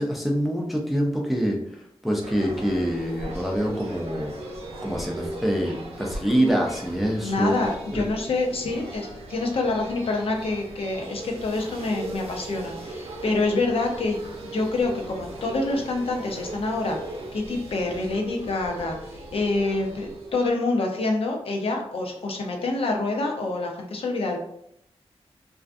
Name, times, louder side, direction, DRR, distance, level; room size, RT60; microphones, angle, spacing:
voice 1, 0.0-1.6 2.0-4.3 4.8-7.6 7.9-8.0, equal, ahead, -1 dB, 0.3 m, -25 dB
sound 1, 2.2-20.5, right 1 dB, 75° right, 0.6 m, -38 dB
voice 2, 7.2-14.2 14.5-17.0 17.3-24.4, left 3 dB, 65° left, 1 dB, 0.5 m, -27 dB
2.5 x 2.3 x 2.4 m, 0.73 s
wide cardioid pair, 170°, 11 cm